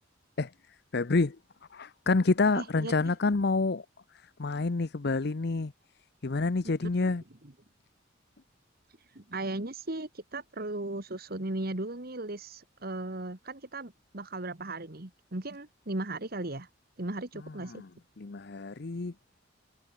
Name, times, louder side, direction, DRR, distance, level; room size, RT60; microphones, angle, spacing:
voice 1, 0.9-1.4 1.7-3.8 4.4-5.7 6.2-7.2 17.7-17.9 18.2-19.1, left 3 dB, 55° left, 0.7 m, -28 dB
voice 2, 2.5-3.1 6.8-7.1 9.0-16.7 17.0-17.8, right 2 dB, 50° right, 1.9 m, -37 dB
head